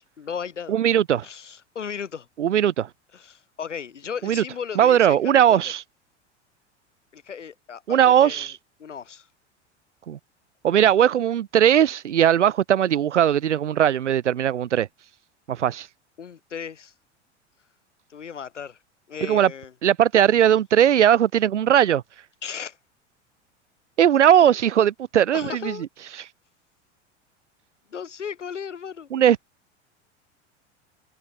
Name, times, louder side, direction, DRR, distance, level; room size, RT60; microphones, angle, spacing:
voice 1, 0.2-0.7 1.2-2.3 3.1-5.6 7.1-8.5 8.8-9.3 16.2-16.9 18.1-18.8 19.1-19.7 22.4-22.8 24.4-24.6 25.3-25.9 27.9-29.1, left 7 dB, 80° left, 6.3 m, -35 dB
voice 2, 0.7-1.2 2.4-2.9 4.2-4.4 4.8-5.8 7.9-8.5 10.1-10.2 10.6-14.9 15.5-15.9 19.2-19.5 19.8-22.0 24.0-25.7 29.1-29.4, right 10 dB, 75° right, 4.8 m, -19 dB
figure-of-eight pair, 85°, 36 cm